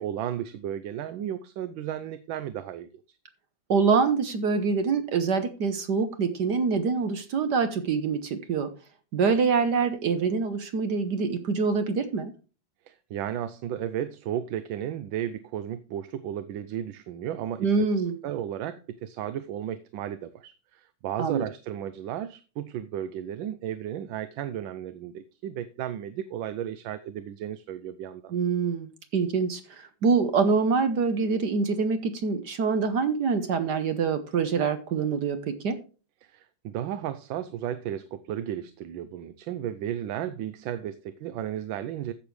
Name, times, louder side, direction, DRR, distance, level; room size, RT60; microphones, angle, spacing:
voice 1, 0.0-3.0 12.9-28.3 36.2-42.1, right 10 dB, 85° right, 1.4 m, -34 dB
voice 2, 3.7-8.7 9.1-12.3 17.6-18.2 21.2-21.4 28.3-35.8, right 5 dB, 65° right, 1.5 m, -25 dB
15.0 x 6.8 x 3.2 m
omnidirectional pair, 2.1 m